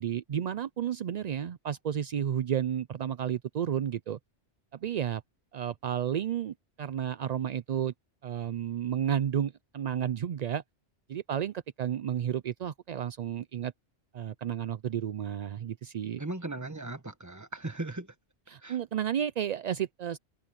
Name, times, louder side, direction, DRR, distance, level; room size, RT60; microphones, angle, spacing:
voice 1, 0.0-4.2 4.7-5.2 5.5-7.9 8.2-10.6 11.1-13.7 14.1-16.2 18.5-20.2, right 9 dB, 60° right, 0.4 m, -32 dB
voice 2, 16.2-18.1 18.6-18.8, right 2 dB, 15° right, 1.3 m, -37 dB
omnidirectional pair, 1.2 m